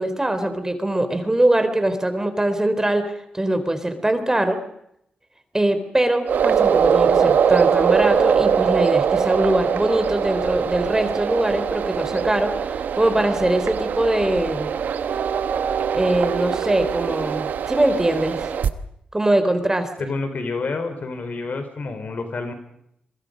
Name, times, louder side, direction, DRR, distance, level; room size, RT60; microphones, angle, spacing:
voice 1, 0.0-3.0 3.3-4.6 5.5-14.7 15.9-18.5 19.1-19.9, right 1 dB, 20° right, 9 dB, 3.9 m, -22 dB
sound 1, 6.3-18.7, right 7 dB, 85° right, 1.1 m, -22 dB
voice 2, 20.0-22.5, left 3 dB, 65° left, 7 dB, 4.5 m, -28 dB
27.0 x 23.0 x 5.3 m, 0.77 s
cardioid pair, 55°, 3 cm